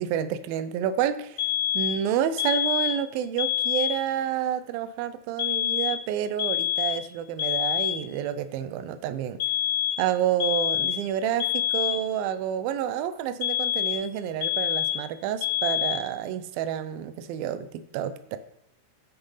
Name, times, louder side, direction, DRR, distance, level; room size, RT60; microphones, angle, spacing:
voice 1, 0.0-1.4 1.7-9.4 10.0-18.4, right 9 dB, 80° right, 12 dB, 2.2 m, -29 dB
sound 1, 1.4-2.0 2.4-3.1 3.4-4.0 5.4-6.1 6.4-7.1 7.4-8.1 9.4-10.1 10.4-11.1 11.4-12.1 13.4-14.1 14.4-15.1 15.4-16.1, left 12 dB, 80° left, 1.4 m, -26 dB
9.9 x 6.0 x 5.6 m, 0.77 s
omnidirectional pair, 4.7 m